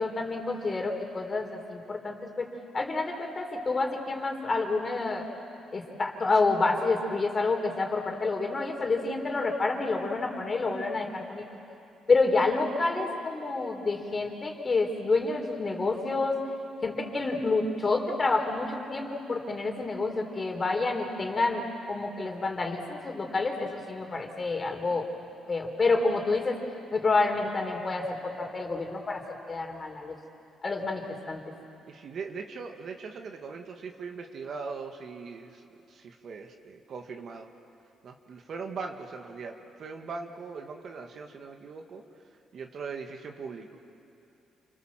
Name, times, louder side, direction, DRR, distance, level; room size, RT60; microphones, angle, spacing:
voice 1, 0.0-2.5 2.7-5.2 5.7-11.4 12.1-16.4 16.8-25.0 25.5-26.6 26.9-29.2 29.5-30.2 30.6-31.4, left 3 dB, 35° left, 2 dB, 4.2 m, -28 dB
voice 2, 31.9-37.5 38.0-42.0 42.5-43.7, right 4 dB, 60° right, 4 dB, 2.1 m, -40 dB
29.5 x 25.5 x 7.7 m, 2.7 s
cardioid pair, 90°, 0 cm